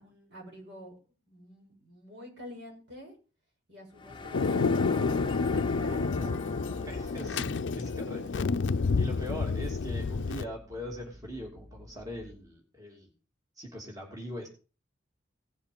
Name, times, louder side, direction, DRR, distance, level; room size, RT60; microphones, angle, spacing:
voice 1, 0.0-3.2 3.7-6.5, equal, 70° right, -1 dB, 7.1 m, -47 dB
sound 1, 4.0-7.7, left 3 dB, 25° left, 0.7 m, -39 dB
Thunder, 4.3-10.4, left 4 dB, 85° left, 0.5 m, -29 dB
sound 2, 5.6-12.4, left 1 dB, 45° right, 2.8 m, -52 dB
voice 2, 6.8-8.4 9.0-13.1 13.6-14.5, equal, 20° right, 0 dB, 2.9 m, -41 dB
17.5 x 7.2 x 5.3 m, 0.35 s
head